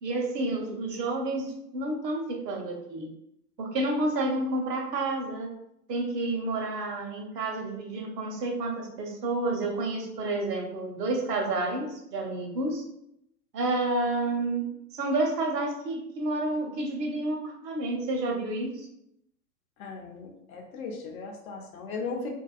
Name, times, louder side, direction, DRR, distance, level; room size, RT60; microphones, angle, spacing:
voice 1, 0.0-3.1 3.6-5.5 5.9-12.8 13.5-14.7 14.9-18.9, right 2 dB, 75° right, 2 dB, 0.8 m, -30 dB
voice 2, 19.8-22.3, left 4 dB, 55° left, 1 dB, 0.7 m, -37 dB
2.5 x 2.3 x 2.3 m, 0.78 s
figure-of-eight pair, 95°, 49 cm